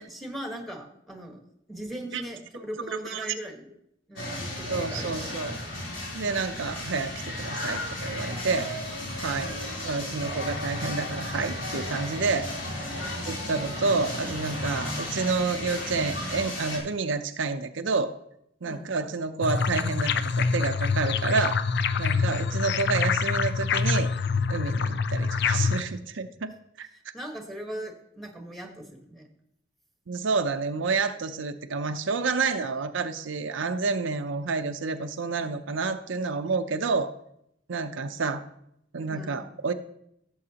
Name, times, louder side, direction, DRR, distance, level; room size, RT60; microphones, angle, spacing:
voice 1, 0.0-1.4 1.7-3.7 4.1-5.2 9.3-9.5 12.9-13.3 18.6-18.9 27.1-29.3 39.1-39.4, right 1 dB, ahead, 2 dB, 1.4 m, -39 dB
voice 2, 2.9-3.3 4.7-5.6 6.1-8.7 9.2-9.5 9.8-12.5 13.3-18.1 18.6-21.6 22.0-24.1 24.5-26.9 30.1-37.1 37.7-38.4 38.9-39.7, right 4 dB, 75° right, 7 dB, 0.6 m, -29 dB
sound 1, 4.2-16.8, left 1 dB, 80° left, 3.5 m, -34 dB
sound 2, 19.4-25.8, left 5 dB, 60° left, 0.5 m, -26 dB
16.5 x 7.2 x 2.9 m, 0.76 s
head